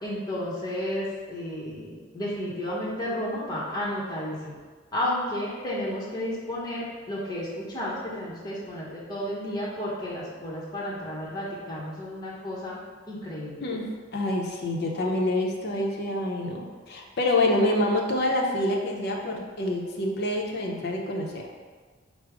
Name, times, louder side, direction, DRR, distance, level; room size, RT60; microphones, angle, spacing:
voice 1, 0.0-4.6 4.9-12.8 13.1-13.6, left 1 dB, 20° left, -7 dB, 0.8 m, -32 dB
voice 2, 13.6-21.5, left 1 dB, 55° left, 0 dB, 0.6 m, -27 dB
4.9 x 2.0 x 4.7 m, 1.5 s
head